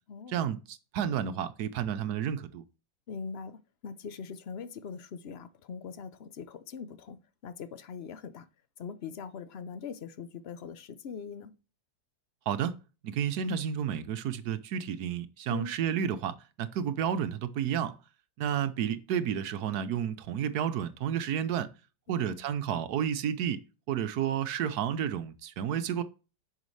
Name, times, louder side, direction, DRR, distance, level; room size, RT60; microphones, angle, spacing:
voice 1, 0.3-2.6 12.5-12.8 13.0-18.0 18.4-21.7 22.1-23.6 23.9-26.0, right 9 dB, 70° right, 1.2 m, -31 dB
voice 2, 3.1-8.5 8.8-11.5 15.5-15.7 22.1-22.4, left 6 dB, 55° left, 0.7 m, -42 dB
9.3 x 6.4 x 3.2 m
omnidirectional pair, 1.8 m